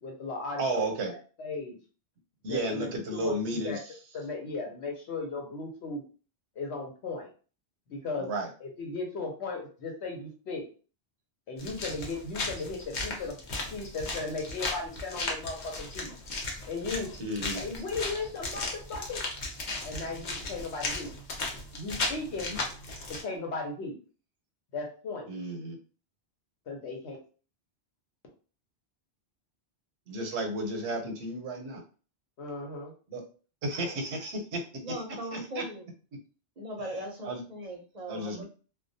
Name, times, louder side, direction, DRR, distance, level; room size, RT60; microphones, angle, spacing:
voice 1, 0.0-0.9 1.4-1.8 2.5-3.8 4.1-6.0 6.6-7.3 7.9-8.3 8.6-10.6 11.5-13.3 13.7-16.1 16.7-17.1 17.5-19.2 19.8-21.1 21.7-22.5 23.2-24.0 24.7-25.3 26.7-27.2 32.4-32.9, left 3 dB, 80° left, 1 dB, 1.0 m, -36 dB
voice 2, 0.6-1.1 2.4-3.8 8.2-8.5 17.2-17.6 25.3-25.8 30.1-31.8 33.1-33.2 33.6-34.6 35.3-35.6 37.2-37.4 38.1-38.4, right 1 dB, 85° right, 4 dB, 0.9 m, -32 dB
sound 1, 11.6-23.2, left 2 dB, 50° left, 0.7 m, -36 dB
voice 3, 34.8-35.9 36.6-38.4, right 1 dB, 45° right, 0 dB, 0.6 m, -39 dB
2.3 x 2.2 x 2.6 m, 0.37 s
omnidirectional pair, 1.1 m